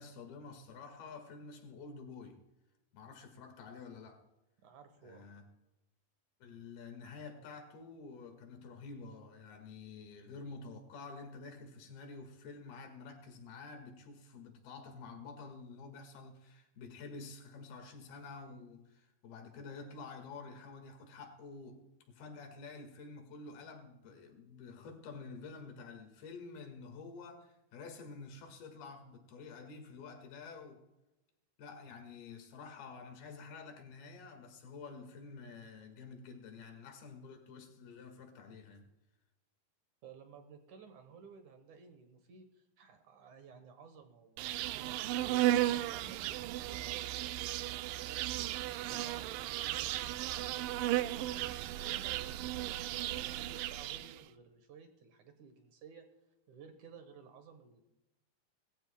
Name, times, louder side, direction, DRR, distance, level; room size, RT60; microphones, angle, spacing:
voice 1, 0.0-2.4 2.9-4.2 5.0-5.4 6.4-30.8 31.6-38.9, left 4 dB, 85° left, 3.7 m, -49 dB
voice 2, 4.6-5.3 40.0-47.4 47.9-51.5 51.8-56.1 56.5-57.8, right 6 dB, 65° right, 2.2 m, -55 dB
Insect, 44.4-54.2, right 14 dB, 85° right, 2.0 m, -35 dB
20.0 x 15.0 x 2.2 m
omnidirectional pair, 4.3 m